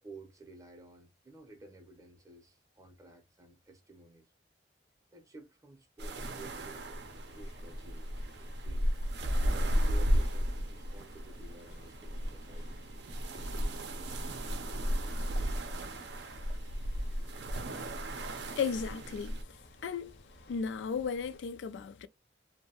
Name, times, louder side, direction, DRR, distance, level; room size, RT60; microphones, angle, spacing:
voice 1, 0.0-4.3 5.1-9.0 9.5-12.8, right 2 dB, 20° right, 0.6 m, -54 dB
sound 1, 6.0-19.4, equal, 65° right, 0.5 m, -34 dB
sound 2, 6.4-21.4, left 1 dB, 60° left, 0.7 m, -57 dB
voice 2, 18.6-19.4 19.8-20.2 20.5-22.1, left 6 dB, 75° left, 0.3 m, -35 dB
2.7 x 2.1 x 2.8 m
head